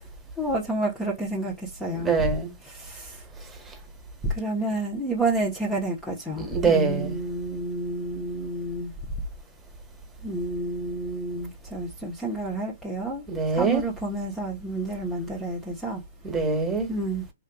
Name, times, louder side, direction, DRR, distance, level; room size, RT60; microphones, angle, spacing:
voice 1, 0.4-2.1 2.7-3.2 4.3-8.9 10.2-13.2 13.5-16.0 16.9-17.2, right 2 dB, 10° left, 1.0 m, -30 dB
voice 2, 1.9-2.5 6.4-7.2 13.3-13.8 16.2-16.9, right 4 dB, 10° right, 1.6 m, -24 dB
5.3 x 3.7 x 2.3 m
hypercardioid pair, 145°, 0 cm